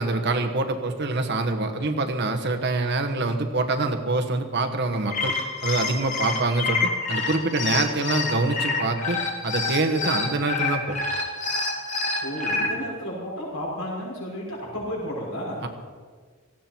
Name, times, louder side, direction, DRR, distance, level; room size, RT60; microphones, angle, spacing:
voice 1, 0.0-5.3 5.6-11.0 15.6-15.7, right 2 dB, 55° right, 5 dB, 1.4 m, -25 dB
sound 1, 4.9-12.7, left 4 dB, 35° left, 2.2 m, -27 dB
voice 2, 12.2-15.6, equal, 75° left, -4 dB, 6.0 m, -32 dB
18.0 x 15.5 x 4.6 m, 1.5 s
head